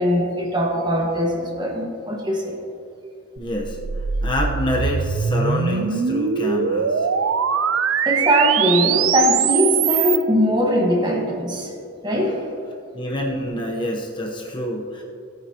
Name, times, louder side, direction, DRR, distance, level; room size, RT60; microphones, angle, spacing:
voice 1, 0.0-2.6 8.0-11.7 12.0-12.5, equal, 20° right, 0 dB, 1.5 m, -21 dB
voice 2, 3.4-3.8 4.2-7.1 12.9-15.0, left 1 dB, 25° left, -1 dB, 1.0 m, -26 dB
sound 1, 3.5-10.2, right 7 dB, 85° right, 0.5 m, -22 dB
18.5 x 9.3 x 2.9 m, 2.6 s
head